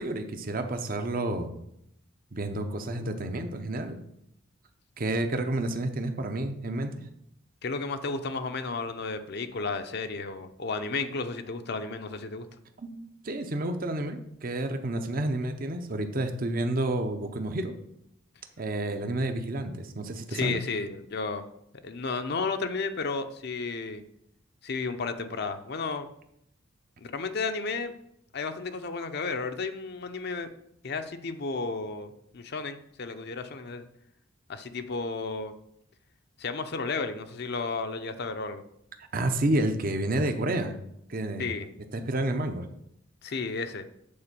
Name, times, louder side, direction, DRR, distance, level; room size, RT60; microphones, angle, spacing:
voice 1, 0.0-1.5 2.3-4.0 5.0-6.9 12.8-17.7 18.6-20.6 39.1-40.8 41.1-41.5 41.9-42.7, right 1 dB, 45° right, 7 dB, 0.7 m, -30 dB
voice 2, 7.6-12.5 20.3-21.4 21.8-24.0 24.6-26.1 27.0-27.9 28.3-30.5 30.8-33.9 34.5-35.5 36.4-38.6 41.4-41.7 43.2-43.9, left 4 dB, 50° left, 8 dB, 0.6 m, -33 dB
8.7 x 4.3 x 6.8 m, 0.76 s
head